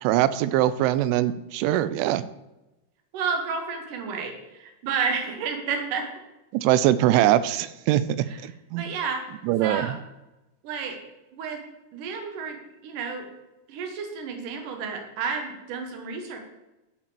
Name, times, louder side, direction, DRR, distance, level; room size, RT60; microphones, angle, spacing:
voice 1, 0.0-2.2 6.5-8.0 8.4-8.9 9.4-10.0, right 13 dB, 90° right, 15 dB, 3.1 m, -22 dB
voice 2, 3.1-6.1 8.3-8.4 8.8-9.3 9.6-9.9 10.6-11.0 11.3-11.6 11.9-12.6 12.8-13.3 13.7-16.4, right 5 dB, 60° right, 4 dB, 2.5 m, -31 dB
12.0 x 5.6 x 7.0 m, 0.99 s
omnidirectional pair, 5.5 m